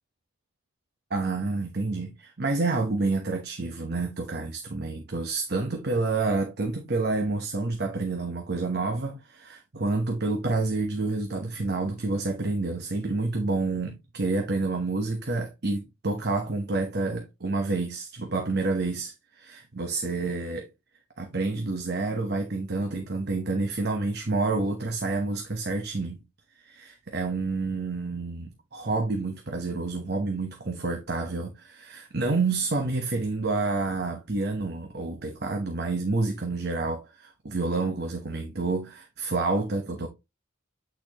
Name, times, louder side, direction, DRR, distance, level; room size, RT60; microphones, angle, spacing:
voice 1, 1.1-20.7 21.2-26.2 26.6-40.1, right 3 dB, 50° right, 1.0 m, -29 dB
8.7 x 4.4 x 2.9 m
head